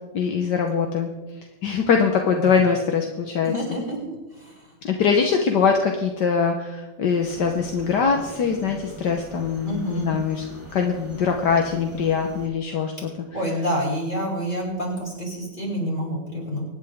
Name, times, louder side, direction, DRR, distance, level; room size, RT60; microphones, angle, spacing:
voice 1, 0.1-1.1 1.6-3.8 4.8-10.5 10.7-13.1, left 6 dB, 70° left, 3 dB, 1.7 m, -22 dB
voice 2, 3.4-4.7 9.6-10.1 13.3-16.7, equal, 25° left, -5 dB, 5.5 m, -28 dB
sound 1, 7.2-12.5, right 3 dB, 10° right, 4.3 m, -41 dB
24.5 x 10.0 x 3.6 m, 1.1 s
omnidirectional pair, 1.9 m